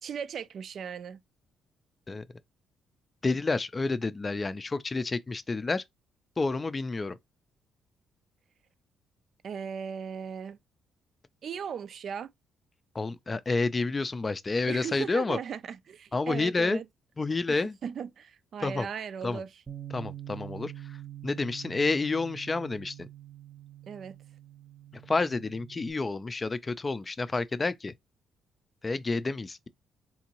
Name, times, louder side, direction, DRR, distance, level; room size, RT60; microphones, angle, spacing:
voice 1, 0.0-1.2 9.4-10.6 11.4-12.3 14.7-16.9 17.5-19.5 23.9-24.2, right 7 dB, 60° right, 0.4 m, -37 dB
voice 2, 3.2-5.8 6.4-7.2 12.9-15.4 16.1-16.8 17.2-17.8 18.6-18.9 19.2-19.4 19.9-21.0 21.2-23.1 25.1-27.9 28.8-29.7, left 3 dB, 25° left, 0.4 m, -29 dB
Bass guitar, 19.7-25.9, right 12 dB, 30° right, 0.7 m, -45 dB
3.7 x 2.6 x 2.9 m
cardioid pair, 90°, 0 cm